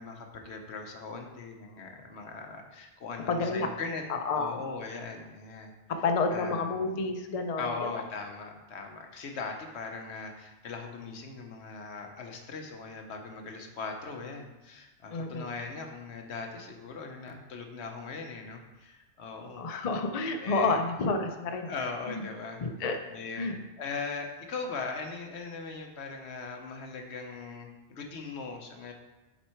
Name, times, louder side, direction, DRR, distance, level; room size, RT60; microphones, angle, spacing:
voice 1, 0.0-4.0 4.4-5.7 6.3-6.6 7.6-19.6 20.4-20.8 21.6-22.6 23.1-28.9, left 4 dB, 70° left, 3 dB, 1.1 m, -39 dB
voice 2, 3.3-3.7 4.1-4.5 5.9-7.7 15.1-15.5 19.6-21.7 22.1-22.2 22.6-23.0 23.3-23.6, left 3 dB, 45° left, 5 dB, 0.5 m, -29 dB
7.2 x 4.5 x 4.4 m, 1.0 s
omnidirectional pair, 1.2 m